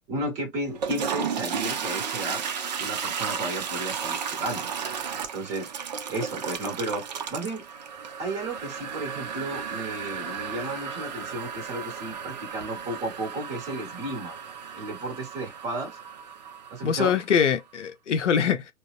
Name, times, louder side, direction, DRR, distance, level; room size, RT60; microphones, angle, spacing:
voice 1, 0.1-2.4 2.8-4.7 5.3-5.7 6.1-7.0 7.3-7.6 8.2-14.4 14.7-16.0 16.7-17.2, right 2 dB, 20° right, 1.2 m, -33 dB
Toilet flush, 0.6-17.4, right 7 dB, 35° right, 0.4 m, -34 dB
voice 2, 16.8-18.7, left 7 dB, 65° left, 0.6 m, -23 dB
3.9 x 2.0 x 2.4 m
figure-of-eight pair, 115°, 38 cm